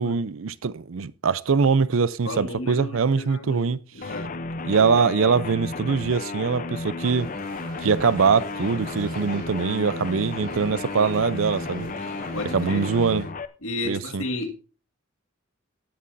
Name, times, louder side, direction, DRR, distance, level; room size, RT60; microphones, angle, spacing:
voice 1, 0.0-3.8 4.6-7.3 7.8-11.9 12.5-13.2 13.9-14.2, right 5 dB, 75° right, 0.5 m, -23 dB
voice 2, 2.3-4.4 12.3-13.3 13.6-14.5, left 2 dB, 80° left, 1.9 m, -33 dB
sound 1, 4.0-13.5, left 3 dB, 40° left, 0.6 m, -33 dB
sound 2, 7.0-13.3, right 1 dB, 45° right, 5.5 m, -43 dB
17.0 x 8.3 x 2.6 m
head